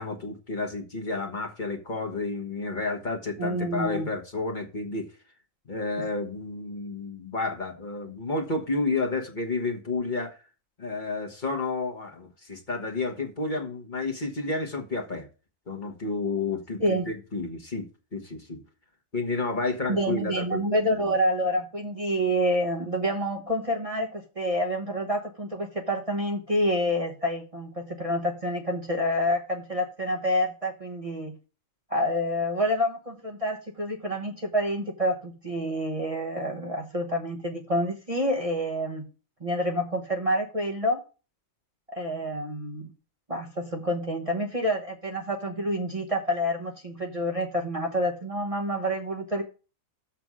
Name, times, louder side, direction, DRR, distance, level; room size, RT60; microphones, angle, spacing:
voice 1, 0.0-5.1 5.7-10.4 10.8-15.3 15.7-18.6 19.1-20.6, left 3 dB, 40° left, 1.3 m, -31 dB
voice 2, 3.4-4.1 16.8-17.1 19.9-31.3 31.9-39.0 39.4-41.0 41.9-42.9 43.3-49.4, equal, 30° right, 1.0 m, -28 dB
6.9 x 5.7 x 6.1 m
omnidirectional pair, 1.4 m